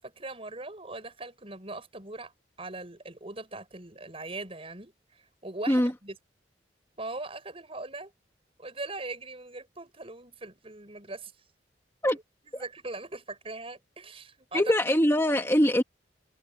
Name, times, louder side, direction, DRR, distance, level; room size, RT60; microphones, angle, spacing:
voice 1, 0.0-2.3 2.6-6.2 7.0-8.1 8.6-11.3 12.4-14.6, right 2 dB, 35° right, 7.4 m, -40 dB
voice 2, 14.5-15.8, equal, 15° left, 1.8 m, -23 dB
head